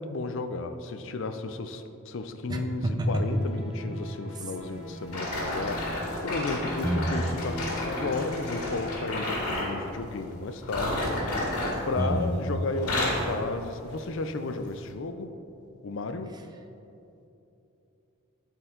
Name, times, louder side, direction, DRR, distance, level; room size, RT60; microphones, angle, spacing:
voice 1, 0.0-11.5 11.8-15.4 15.8-16.3, left 3 dB, 60° left, 9 dB, 0.5 m, -33 dB
voice 2, 2.5-3.1 6.8-7.2 12.0-12.3, right 1 dB, 20° right, 4 dB, 0.6 m, -28 dB
sound 1, 2.9-9.0, left 1 dB, ahead, 1.2 m, -41 dB
sound 2, 5.1-9.8 10.6-12.4 12.7-13.3 13.9-14.1 14.8-14.9, left 1 dB, 90° left, 1.8 m, -31 dB
12.5 x 4.5 x 3.8 m, 2.8 s
head